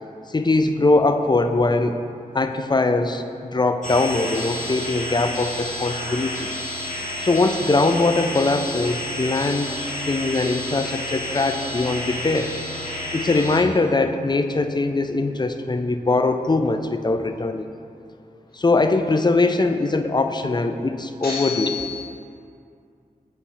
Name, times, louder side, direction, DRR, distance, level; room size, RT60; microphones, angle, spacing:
voice 1, 0.3-2.0 2.3-6.5 7.2-9.7 10.1-12.5 13.1-17.7 18.5-21.7, left 3 dB, 30° left, 7 dB, 0.4 m, -21 dB
sound 1, 3.8-13.6, left 1 dB, 55° left, 1.3 m, -30 dB
voice 2, 21.2-22.1, left 6 dB, 85° left, -9 dB, 1.5 m, -30 dB
8.3 x 2.8 x 4.9 m, 2.4 s
cardioid pair, 45°, 15 cm